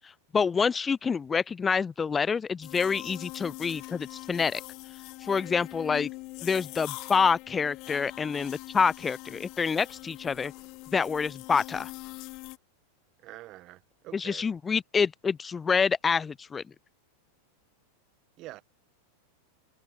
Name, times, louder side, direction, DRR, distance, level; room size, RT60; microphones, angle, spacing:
voice 1, 0.3-4.6 5.2-6.1 6.4-10.5 10.9-11.9 14.1-16.6, left 5 dB, 15° left, 0.9 m, -27 dB
sound 1, 2.6-12.6, left 24 dB, 40° left, 2.6 m, -43 dB
voice 2, 13.2-14.5 18.4-18.6, right 17 dB, 35° right, 1.4 m, -46 dB
figure-of-eight pair, 90°, 0 cm